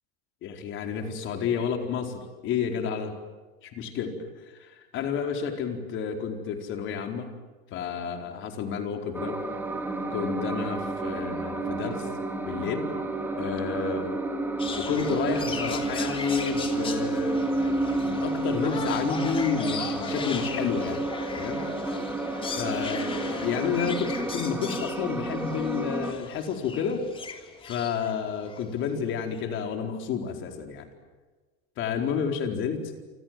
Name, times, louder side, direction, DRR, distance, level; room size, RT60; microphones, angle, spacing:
voice 1, 0.4-3.1 3.6-7.3 7.7-9.4 10.1-12.1 12.4-12.9 13.4-14.2 14.8-17.4 18.0-21.6 22.5-27.1 27.6-30.9 31.8-32.9, left 6 dB, 40° left, 5 dB, 4.5 m, -30 dB
sound 1, 9.1-26.1, right 2 dB, 5° right, 2.8 m, -30 dB
sound 2, 14.6-28.8 29.3-29.4, left 4 dB, 15° left, 3.0 m, -38 dB
28.5 x 26.5 x 7.8 m, 1.3 s
supercardioid pair, 150°, 30 cm